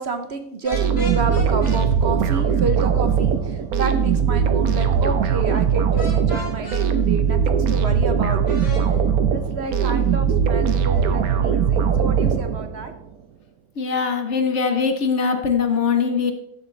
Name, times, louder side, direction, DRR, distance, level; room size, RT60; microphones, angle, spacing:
voice 1, 0.0-9.0 9.3-12.9, right 4 dB, 55° right, 7 dB, 1.0 m, -29 dB
sound 1, 0.6-1.8 6.0-6.8 8.4-8.8, left 1 dB, 80° left, 5.1 m, -34 dB
sound 2, 0.7-12.9, right 7 dB, 80° right, 1.3 m, -20 dB
voice 2, 13.8-16.3, left 5 dB, 55° left, 6 dB, 1.2 m, -21 dB
14.5 x 8.0 x 3.2 m, 0.78 s
omnidirectional pair, 1.5 m